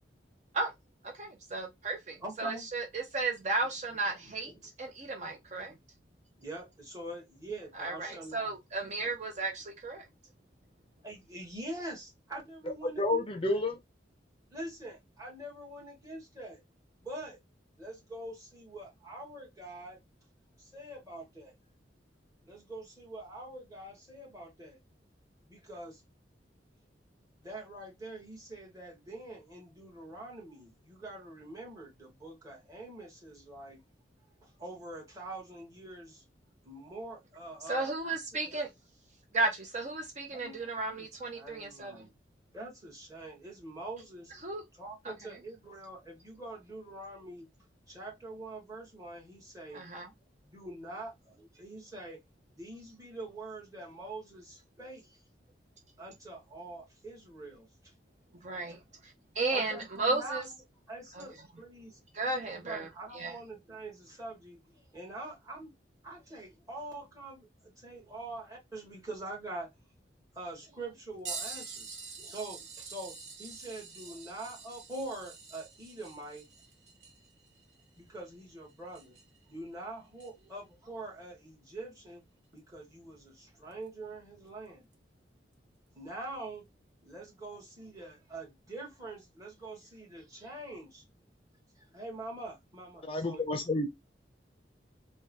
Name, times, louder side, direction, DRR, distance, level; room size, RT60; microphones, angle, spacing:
voice 1, 1.0-4.5 4.8-5.7 7.8-10.0 37.7-38.7 39.3-42.0 44.4-44.6 49.7-50.1 58.4-58.8 59.4-60.4 61.2-61.3 62.1-62.9 63.1-63.3, right 3 dB, 40° right, 0.7 m, -34 dB
voice 2, 2.2-2.7 4.2-4.7 6.4-9.1 11.0-13.2 14.5-16.6 17.0-17.4 17.8-20.0 20.6-21.5 22.4-24.8 25.5-26.0 27.3-33.8 34.4-36.2 36.6-38.6 40.3-42.1 42.5-44.4 44.7-47.5 47.9-49.8 50.4-52.2 52.5-55.2 56.0-57.9 58.7-58.8 59.5-60.5 60.9-62.0 62.5-65.7 66.0-69.7 70.3-71.9 72.2-76.5 78.0-79.1 79.5-82.2 82.5-84.9 85.9-86.6 87.0-91.0 91.8-93.4, right 2 dB, 20° right, 1.7 m, -44 dB
voice 3, 13.0-13.8 93.0-93.9, left 2 dB, 30° left, 0.6 m, -30 dB
sound 1, 71.3-79.5 80.2-80.3 82.6-82.7 83.7-83.9 84.9-85.0, right 5 dB, 85° right, 1.1 m, -46 dB
3.5 x 2.3 x 2.6 m
head